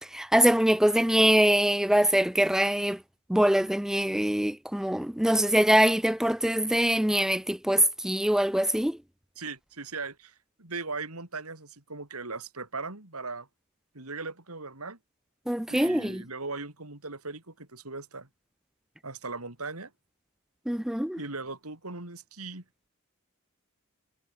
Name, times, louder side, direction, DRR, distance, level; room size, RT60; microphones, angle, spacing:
voice 1, 0.1-3.0 3.3-9.0 15.5-16.2 20.7-21.2, right 1 dB, ahead, 0.4 m, -23 dB
voice 2, 9.4-13.5 13.9-15.0 15.7-18.3 19.0-19.9 21.2-22.6, right 3 dB, 85° right, 4.6 m, -38 dB
head